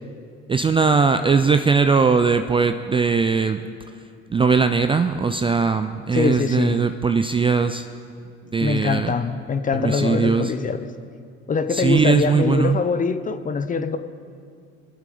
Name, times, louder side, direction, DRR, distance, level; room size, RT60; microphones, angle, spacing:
voice 1, 0.5-3.6 4.3-7.9 8.5-9.1 9.7-10.5 11.7-12.8, right 5 dB, 15° right, 9 dB, 0.4 m, -19 dB
voice 2, 6.1-6.8 8.6-10.8 11.5-14.0, left 5 dB, 25° left, 10 dB, 0.8 m, -23 dB
22.5 x 7.6 x 5.0 m, 2.3 s
hypercardioid pair, 75°, 32 cm